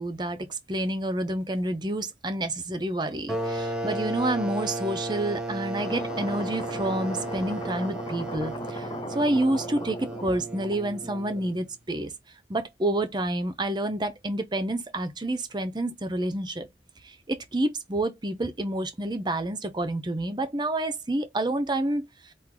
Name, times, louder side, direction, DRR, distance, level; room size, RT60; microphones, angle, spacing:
voice 1, 0.0-12.1 12.5-16.7 17.0-22.1, right 1 dB, 25° right, 0.6 m, -29 dB
sound 1, 3.3-11.7, right 2 dB, 5° right, 0.9 m, -34 dB
sound 2, 5.8-11.6, left 2 dB, 25° left, 0.4 m, -38 dB
4.7 x 2.5 x 3.7 m
head